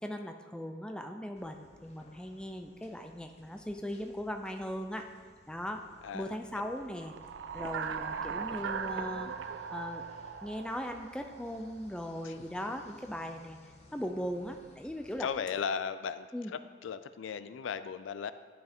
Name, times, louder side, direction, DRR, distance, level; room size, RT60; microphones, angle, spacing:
voice 1, 0.0-5.1 5.5-5.8 6.1-7.1 7.5-9.3 9.7-10.0 10.4-13.6 13.9-15.3 16.3-16.5, equal, 5° left, 5 dB, 0.4 m, -39 dB
sound 1, 1.3-15.4, left 1 dB, 35° left, 0.7 m, -59 dB
voice 2, 6.0-6.4 12.2-12.4 15.2-16.3 16.8-18.3, left 6 dB, 90° left, 13 dB, 0.4 m, -36 dB
sound 2, 7.0-11.6, right 6 dB, 75° right, 0.4 m, -39 dB
10.5 x 5.6 x 3.6 m, 1.5 s
head